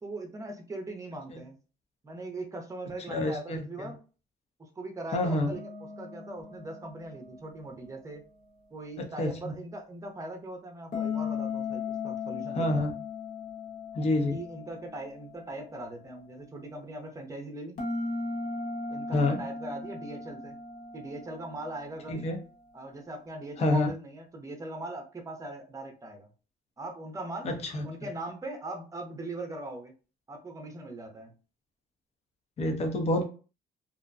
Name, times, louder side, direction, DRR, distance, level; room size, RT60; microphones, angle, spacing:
voice 1, 0.0-1.6 2.0-4.0 4.6-5.7 6.0-8.2 8.7-12.9 14.3-17.8 18.9-20.6 20.9-22.3 22.7-26.3 26.8-27.5 27.8-29.9 30.3-31.3, right 2 dB, 20° right, 4 dB, 0.7 m, -40 dB
voice 2, 3.1-3.6 5.1-5.5 9.0-9.5 12.5-12.9 13.9-14.4 19.1-19.4 22.1-22.4 23.6-23.9 27.4-27.8 32.6-33.2, left 1 dB, 40° left, 4 dB, 0.6 m, -27 dB
sound 1, 5.5-8.6 10.9-15.4 17.8-22.3, left 4 dB, 60° left, 1.1 m, -37 dB
2.5 x 2.1 x 2.5 m, 0.36 s
cardioid pair, 110°, 17 cm